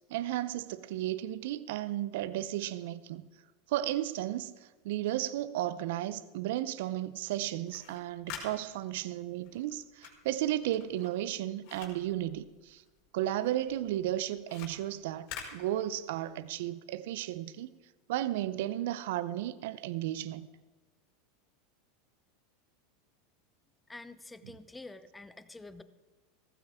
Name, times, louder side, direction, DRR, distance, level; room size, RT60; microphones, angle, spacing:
voice 1, 0.1-3.3 3.7-12.8 13.1-17.7 18.1-20.5, right 13 dB, 70° right, 0.6 m, -34 dB
sound 1, 7.5-13.1 13.4-16.3, left 8 dB, 60° left, 5.1 m, -48 dB
voice 2, 23.9-25.8, left 2 dB, 10° left, 0.9 m, -48 dB
17.0 x 15.0 x 3.6 m
hypercardioid pair, 95°, 0 cm